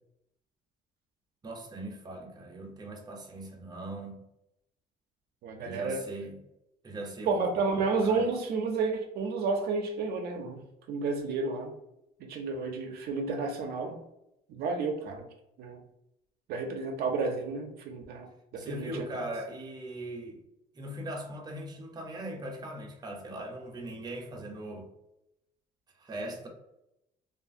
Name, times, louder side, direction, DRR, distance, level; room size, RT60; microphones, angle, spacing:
voice 1, 1.4-4.2 5.6-6.4 6.8-7.3 7.7-8.3 18.6-20.4 20.7-24.9 25.9-26.5, right 1 dB, 25° right, 1 dB, 0.6 m, -40 dB
voice 2, 5.4-6.0 7.3-10.6 10.9-11.7 12.2-14.0 14.5-15.3 15.6-15.8 16.5-18.3 18.5-19.1, right 4 dB, 70° right, 3 dB, 0.4 m, -31 dB
2.6 x 2.4 x 2.5 m, 0.85 s
cardioid pair, 110°, 17 cm